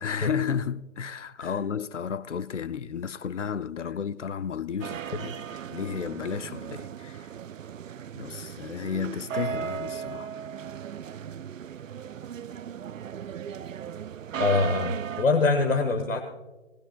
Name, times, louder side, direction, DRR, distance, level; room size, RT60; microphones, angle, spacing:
voice 1, 0.0-5.4 5.7-7.3 8.2-10.3, left 7 dB, 70° left, 0.7 m, -32 dB
sound 1, 4.8-15.3, right 8 dB, 90° right, 0.6 m, -37 dB
voice 2, 14.4-16.2, left 3 dB, 85° left, 1.7 m, -24 dB
20.0 x 19.0 x 2.3 m
hypercardioid pair, 180°, 38 cm